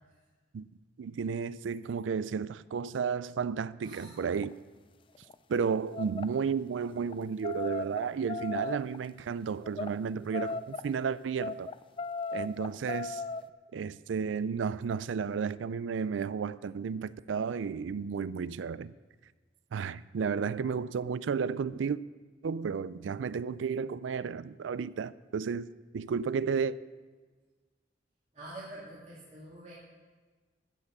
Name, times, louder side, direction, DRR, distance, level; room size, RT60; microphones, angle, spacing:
voice 1, 1.0-4.5 5.5-11.7 12.3-13.2 13.7-18.9 19.7-22.0 22.4-25.7 25.9-26.8, right 6 dB, 85° right, 0.4 m, -32 dB
voice 2, 3.8-4.2 28.3-29.7, right 1 dB, 40° right, 2.5 m, -46 dB
sound 1, 4.2-4.5 5.2-5.4 5.9-6.3 7.0-9.0 9.6-9.9 10.3-10.9 11.4-13.4, left 4 dB, 30° left, 0.3 m, -36 dB
14.5 x 5.8 x 6.6 m
head